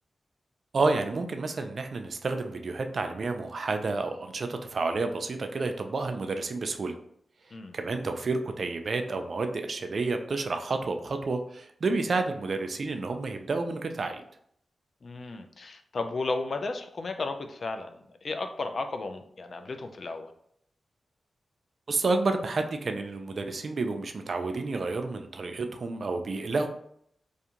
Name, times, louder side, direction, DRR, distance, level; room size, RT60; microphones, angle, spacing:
voice 1, 0.7-6.9 7.7-14.2 21.9-26.7, right 3 dB, 60° right, 6 dB, 0.3 m, -30 dB
voice 2, 15.0-20.3, left 3 dB, 60° left, 7 dB, 0.3 m, -34 dB
2.5 x 2.3 x 2.8 m, 0.69 s
cardioid pair, 60°, 0 cm